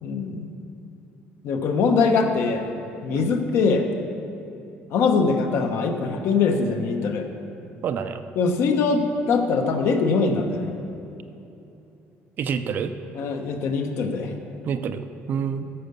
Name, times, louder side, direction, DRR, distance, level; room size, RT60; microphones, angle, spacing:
voice 1, 0.0-0.5 1.4-2.7 3.0-3.9 4.9-7.3 8.4-10.7 13.1-14.3, left 4 dB, 60° left, 5 dB, 1.0 m, -22 dB
voice 2, 7.8-8.2 12.4-13.0 14.7-15.7, right 7 dB, 45° right, 10 dB, 0.5 m, -27 dB
10.0 x 6.6 x 6.8 m, 2.8 s
cardioid pair, 160°, 5 cm